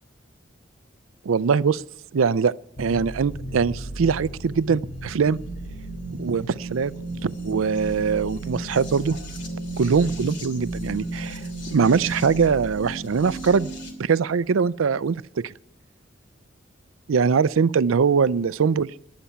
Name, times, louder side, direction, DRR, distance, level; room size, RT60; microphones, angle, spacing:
voice 1, 1.2-1.8 2.1-5.4 6.1-6.9 7.2-9.2 9.8-11.4 11.7-13.7 14.0-15.5 17.1-18.9, right 5 dB, 90° right, 0.4 m, -22 dB
sound 1, 2.8-13.9, right 1 dB, 60° left, 2.9 m, -34 dB
18.5 x 11.5 x 5.7 m
head